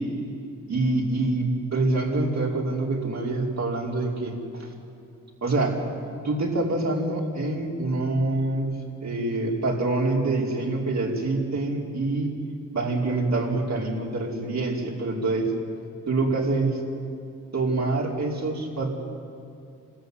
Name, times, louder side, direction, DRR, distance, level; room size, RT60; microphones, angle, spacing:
voice 1, 0.7-4.7 5.4-5.8 6.1-8.8 9.0-12.3 12.7-15.5 16.1-16.8 17.5-18.9, right 2 dB, 55° right, -2 dB, 5.2 m, -26 dB
27.0 x 14.0 x 9.7 m, 2.5 s
cardioid pair, 60°, 33 cm